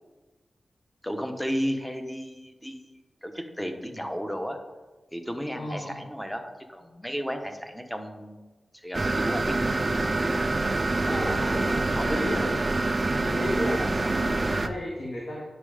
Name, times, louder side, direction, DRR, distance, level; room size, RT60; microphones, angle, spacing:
voice 1, 1.0-2.9 3.2-4.6 5.1-8.4 8.7-9.9 11.9-12.3, equal, 5° left, 5 dB, 0.9 m, -33 dB
voice 2, 5.5-6.1 11.0-12.6 13.2-15.4, left 1 dB, 55° left, -3 dB, 1.6 m, -34 dB
sound 1, 8.9-14.7, right 2 dB, 25° right, 0.5 m, -26 dB
9.6 x 6.2 x 4.9 m, 1.2 s
wide cardioid pair, 150°, 0 cm